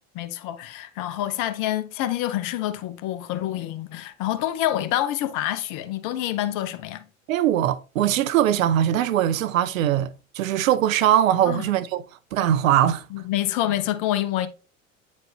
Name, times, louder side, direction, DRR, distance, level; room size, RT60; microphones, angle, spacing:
voice 1, 0.1-7.0 11.5-11.6 13.1-14.5, left 13 dB, 50° left, 0.9 m, -27 dB
voice 2, 7.3-12.0 12.3-13.0, right 11 dB, 75° right, 0.7 m, -21 dB
9.0 x 4.5 x 2.8 m
hypercardioid pair, 75°, 40 cm